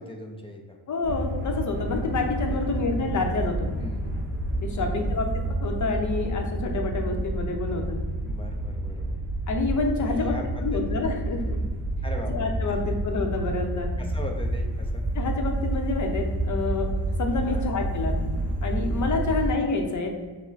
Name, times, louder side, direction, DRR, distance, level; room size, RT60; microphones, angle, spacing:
voice 1, 0.0-0.8 2.5-2.6 3.8-4.2 4.8-5.3 8.2-9.2 10.0-11.1 11.4-11.7 12.0-12.8 14.0-15.1 17.4-17.8 19.3-19.6, left 1 dB, 15° left, 2 dB, 0.4 m, -40 dB
voice 2, 0.9-3.7 4.6-8.0 9.5-10.3 10.6-11.6 12.3-13.9 15.2-16.9 17.2-18.2 18.6-20.1, left 3 dB, 45° left, 3 dB, 0.7 m, -28 dB
sound 1, 1.0-19.5, right 1 dB, 25° right, 0.9 m, -29 dB
6.0 x 2.2 x 4.0 m, 1.4 s
wide cardioid pair, 145°, 42 cm